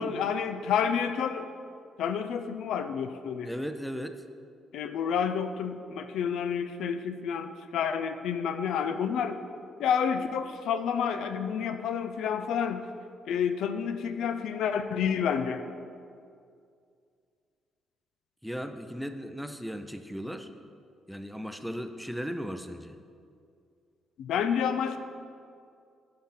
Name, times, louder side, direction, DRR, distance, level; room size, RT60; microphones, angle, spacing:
voice 1, 0.0-1.5 2.0-3.5 4.7-9.4 9.8-12.9 13.3-15.7 24.2-25.0, left 7 dB, 80° left, 9 dB, 0.4 m, -29 dB
voice 2, 3.5-4.2 18.4-20.5 21.1-23.0, equal, ahead, 8 dB, 0.5 m, -36 dB
10.5 x 5.6 x 3.8 m, 2.3 s
cardioid pair, 90°, 0 cm